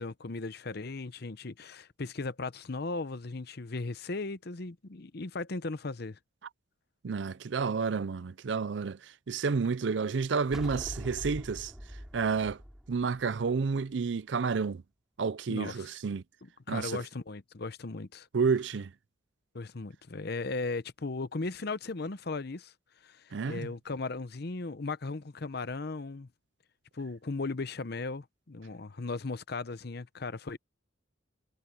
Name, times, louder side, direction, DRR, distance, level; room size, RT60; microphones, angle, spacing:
voice 1, 0.0-6.2 15.5-15.9 16.7-18.3 19.5-22.7 23.0-26.3 26.9-30.6, left 3 dB, 55° left, 0.8 m, -37 dB
voice 2, 7.0-11.7 12.1-12.6 12.9-14.8 15.2-16.2 16.7-17.0 18.3-18.9 23.3-23.7, right 5 dB, 65° right, 0.5 m, -30 dB
sound 1, 10.5-13.9, equal, 5° right, 3.8 m, -43 dB
head